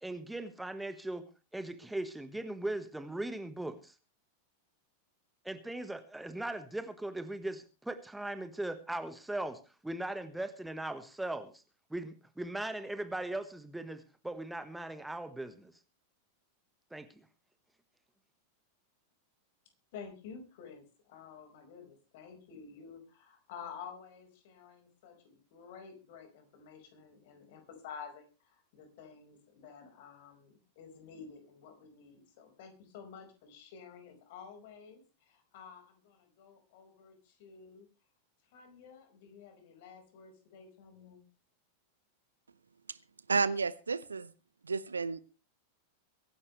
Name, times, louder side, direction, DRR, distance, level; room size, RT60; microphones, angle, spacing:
voice 1, 0.0-1.2 1.5-3.9 5.4-11.6 11.9-15.7 16.9-17.1, right 1 dB, 5° right, 1.4 m, -39 dB
voice 2, 19.9-37.9 38.5-41.2, left 6 dB, 50° left, 5.0 m, -51 dB
voice 3, 43.3-44.3 44.6-45.2, right 4 dB, 75° right, 0.8 m, -31 dB
23.0 x 11.5 x 3.3 m
figure-of-eight pair, 90°, 0 cm